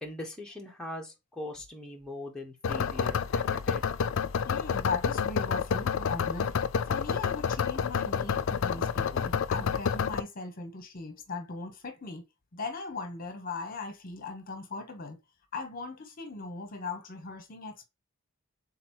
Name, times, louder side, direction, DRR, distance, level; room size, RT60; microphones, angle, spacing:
voice 1, 0.0-3.8, left 1 dB, 5° left, 1.0 m, -41 dB
sound 1, 2.6-10.2, left 6 dB, 65° left, 0.4 m, -29 dB
voice 2, 4.4-12.2 12.5-15.2 15.5-17.9, left 4 dB, 45° left, 0.9 m, -39 dB
3.9 x 3.0 x 4.4 m
head